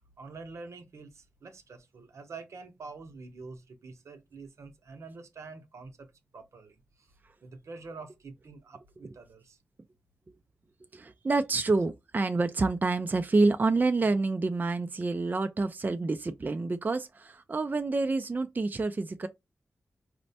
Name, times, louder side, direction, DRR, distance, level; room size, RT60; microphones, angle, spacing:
voice 1, 0.2-6.1 6.3-7.1 7.4-9.6, right 4 dB, 75° right, 0.7 m, -46 dB
voice 2, 10.9-19.3, right 3 dB, 35° right, 0.4 m, -28 dB
4.2 x 2.1 x 2.7 m
cardioid pair, 45°, 5 cm